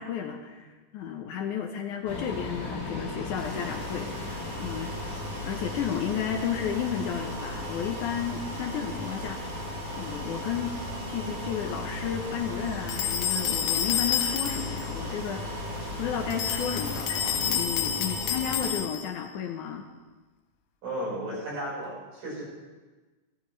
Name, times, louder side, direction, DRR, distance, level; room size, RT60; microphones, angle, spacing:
voice 1, 0.0-4.9 5.4-9.6 9.9-10.7 11.1-19.9, left 8 dB, 75° left, 4 dB, 2.0 m, -33 dB
sound 1, 2.0-18.7, left 1 dB, 45° left, 5.9 m, -36 dB
sound 2, 3.3-17.6, right 1 dB, 30° right, 2.4 m, -43 dB
sound 3, 12.9-14.9 16.3-19.2, left 9 dB, 90° left, 2.4 m, -29 dB
voice 2, 20.8-22.4, right 1 dB, 70° right, -6 dB, 6.2 m, -34 dB
14.5 x 13.5 x 3.1 m, 1.3 s
omnidirectional pair, 3.9 m